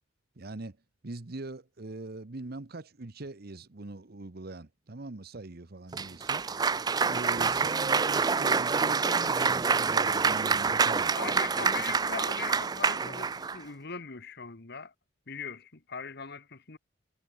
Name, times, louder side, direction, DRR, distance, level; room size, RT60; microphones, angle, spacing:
voice 1, 0.4-0.8 1.0-6.4 7.0-11.1, right 2 dB, 55° right, 1.0 m, -42 dB
Cheering / Applause, 5.9-13.6, right 5 dB, 20° right, 0.4 m, -27 dB
voice 2, 11.1-14.9 15.3-16.8, left 5 dB, 55° left, 1.5 m, -40 dB
head